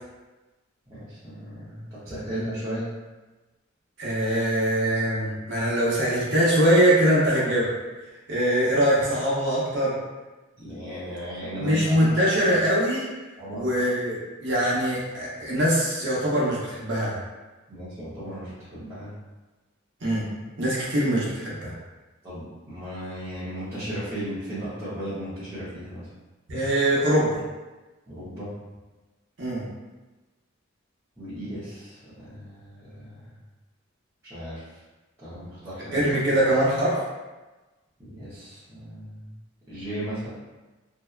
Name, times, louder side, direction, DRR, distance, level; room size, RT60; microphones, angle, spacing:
voice 1, 0.9-2.9 10.6-12.0 13.4-13.6 17.7-19.1 22.2-26.1 28.1-28.5 31.2-33.3 34.2-34.6 35.2-36.0 38.0-39.3 39.7-40.3, equal, 15° right, -15 dB, 0.7 m, -35 dB
voice 2, 4.0-7.7 8.3-9.9 11.6-13.1 13.5-17.2 20.0-20.2 20.6-21.7 26.5-27.3 29.4-29.6 35.9-37.0, right 1 dB, 60° right, -6 dB, 0.7 m, -22 dB
2.7 x 2.2 x 2.3 m, 1.2 s
head